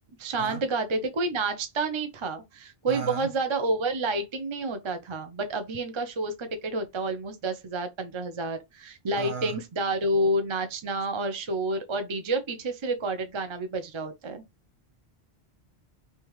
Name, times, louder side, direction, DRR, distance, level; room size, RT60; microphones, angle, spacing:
voice 1, 0.2-14.4, right 2 dB, 35° right, 0.6 m, -29 dB
voice 2, 2.9-3.3 9.1-9.6, right 6 dB, 55° right, 1.0 m, -35 dB
3.5 x 2.8 x 3.1 m
omnidirectional pair, 1.1 m